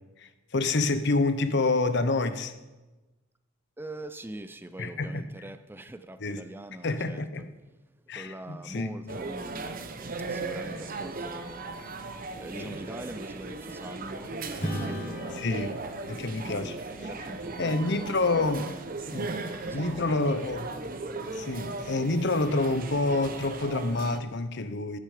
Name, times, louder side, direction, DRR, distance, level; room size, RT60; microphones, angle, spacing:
voice 1, 0.2-2.5 4.8-5.3 6.2-6.4 6.8-7.4 8.1-9.2 12.5-12.8 15.3-15.8 16.1-16.7 17.6-18.6 19.1-19.3 19.7-20.7 21.3-25.0, left 2 dB, 60° left, 0.9 m, -28 dB
voice 2, 3.8-7.5 8.0-15.5 16.4-18.8 19.2-20.2, right 1 dB, 10° right, 0.4 m, -43 dB
sound 1, 9.1-24.2, right 3 dB, 45° right, 0.8 m, -37 dB
Acoustic guitar / Strum, 14.6-19.4, equal, 40° left, 4.1 m, -40 dB
14.5 x 9.0 x 5.0 m
head